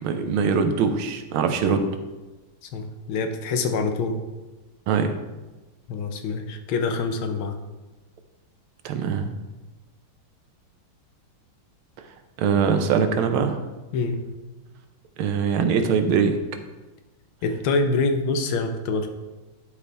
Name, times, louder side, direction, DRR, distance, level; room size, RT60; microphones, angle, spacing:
voice 1, 0.0-1.8 4.9-5.2 8.8-9.4 12.4-13.6 15.2-16.4, right 6 dB, 80° right, 7 dB, 1.5 m, -22 dB
voice 2, 2.6-4.2 5.9-7.6 13.9-14.2 17.4-19.1, left 3 dB, 80° left, 6 dB, 1.5 m, -25 dB
11.5 x 4.8 x 3.4 m, 1.1 s
omnidirectional pair, 2.3 m